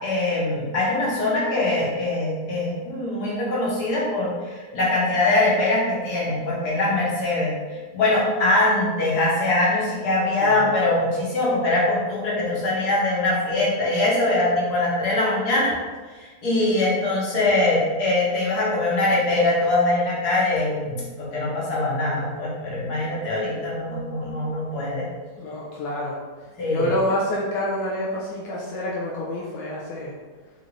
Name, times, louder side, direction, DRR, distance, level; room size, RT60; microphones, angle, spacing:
voice 1, 0.0-15.7 16.1-25.1 26.6-26.9, left 2 dB, 65° left, -5 dB, 1.7 m, -22 dB
voice 2, 25.4-26.2 26.7-30.1, left 1 dB, 85° left, -5 dB, 1.4 m, -28 dB
3.9 x 3.8 x 3.2 m, 1.4 s
omnidirectional pair, 1.8 m